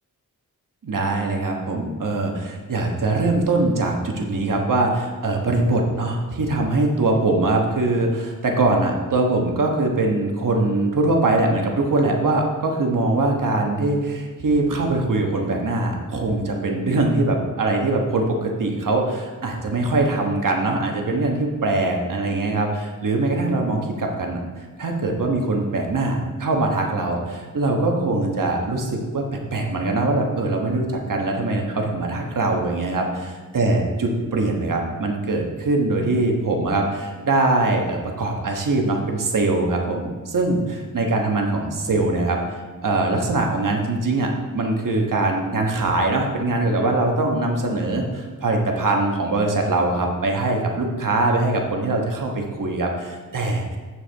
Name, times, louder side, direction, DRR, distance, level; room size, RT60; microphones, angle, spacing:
voice 1, 0.8-24.4 24.8-29.2 29.5-42.4 42.8-53.8, right 2 dB, 70° right, 1 dB, 1.3 m, -22 dB
14.0 x 4.8 x 3.5 m, 1.4 s
wide cardioid pair, 120°, 33 cm